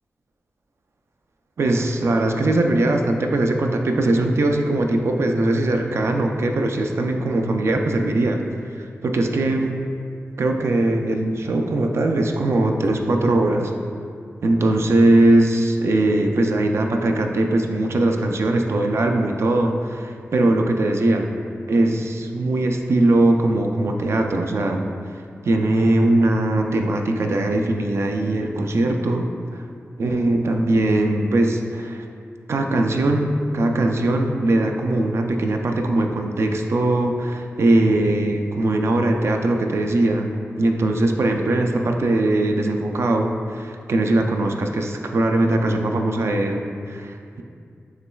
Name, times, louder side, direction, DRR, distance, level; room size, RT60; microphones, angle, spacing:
voice 1, 1.6-8.4 8.8-9.7 10.4-13.7 14.4-21.3 21.7-24.9 25.5-29.6 30.0-32.0 32.5-40.3 40.6-46.6, right 2 dB, 65° right, 3 dB, 0.4 m, -20 dB
7.0 x 3.1 x 2.3 m, 2.3 s
wide cardioid pair, 105°, 5 cm